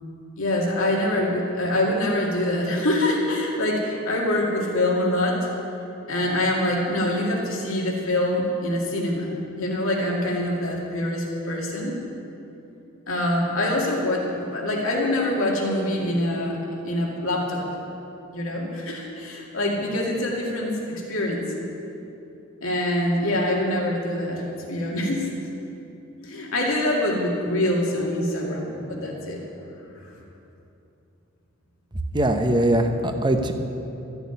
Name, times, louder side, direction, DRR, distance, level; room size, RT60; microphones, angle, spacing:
voice 1, 0.4-5.5 6.1-12.0 13.1-17.6 18.3-21.5 22.6-25.3 26.2-29.4 30.0-30.1, left 1 dB, 75° left, -2 dB, 2.3 m, -25 dB
voice 2, 32.1-33.5, right 1 dB, 20° right, 5 dB, 0.9 m, -21 dB
13.5 x 7.0 x 9.4 m, 2.9 s
head